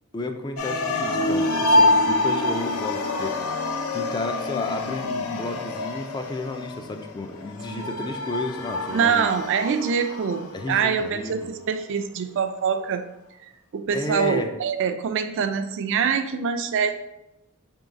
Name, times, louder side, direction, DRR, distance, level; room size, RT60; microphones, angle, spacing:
voice 1, 0.1-3.3 3.9-9.3 10.5-11.5 13.9-14.5, left 2 dB, 20° left, 5 dB, 0.3 m, -32 dB
sound 1, 0.6-10.9, left 2 dB, 75° left, 0.5 m, -26 dB
voice 2, 8.9-13.1 13.7-16.9, right 6 dB, 60° right, 8 dB, 0.4 m, -24 dB
3.6 x 3.2 x 4.0 m, 0.92 s
head